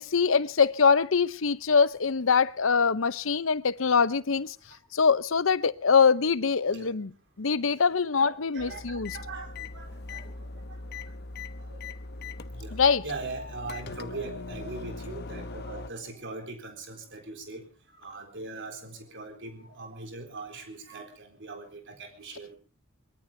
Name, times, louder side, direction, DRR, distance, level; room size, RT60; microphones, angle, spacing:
voice 1, 0.0-4.6 4.9-7.1 7.4-9.2 12.7-13.1, left 5 dB, 70° left, 0.8 m, -23 dB
voice 2, 8.2-10.8 11.6-11.8 12.5-12.8 13.0-17.7 18.0-22.6, right 3 dB, 60° right, 4.0 m, -41 dB
sound 1, 8.6-15.9, left 3 dB, 55° left, 1.0 m, -40 dB
23.0 x 22.0 x 2.8 m
head